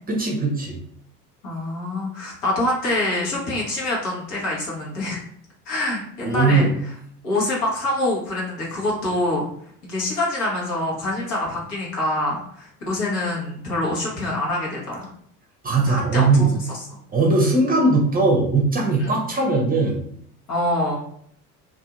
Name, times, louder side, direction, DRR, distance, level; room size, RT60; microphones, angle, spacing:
voice 1, 0.1-0.8 6.2-6.8 15.6-16.6 17.1-20.0, right 3 dB, 20° right, -1 dB, 0.6 m, -19 dB
voice 2, 1.4-5.2 5.7-6.7 7.2-9.4 9.8-15.1 15.8-16.5 17.4-17.5 19.0-19.1 20.5-21.0, left 1 dB, 70° left, -4 dB, 1.2 m, -25 dB
2.7 x 2.6 x 2.4 m, 0.66 s
figure-of-eight pair, 60°, 46 cm